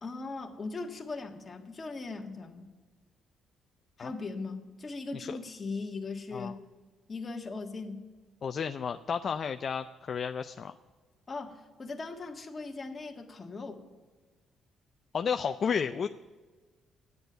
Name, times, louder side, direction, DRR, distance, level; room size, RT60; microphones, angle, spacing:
voice 1, 0.0-2.7 4.0-6.6 7.1-8.0 11.3-13.8, left 3 dB, 30° left, 3 dB, 1.6 m, -39 dB
voice 2, 8.4-10.7 15.1-16.1, left 6 dB, 50° left, 8 dB, 0.4 m, -32 dB
10.5 x 9.5 x 6.8 m, 1.4 s
cardioid pair, 85°, 0 cm